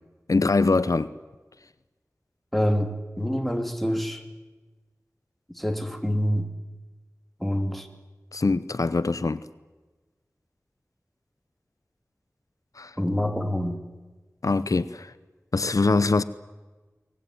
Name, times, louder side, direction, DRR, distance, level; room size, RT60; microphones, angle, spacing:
voice 1, 0.3-1.1 8.3-9.4 12.8-12.9 14.4-15.1 15.5-16.2, left 3 dB, 75° left, 0.8 m, -23 dB
voice 2, 2.5-4.2 5.5-6.5 7.4-7.9 13.0-13.8, equal, ahead, 3.1 m, -26 dB
24.0 x 19.0 x 9.6 m
wide cardioid pair, 45°, 6 cm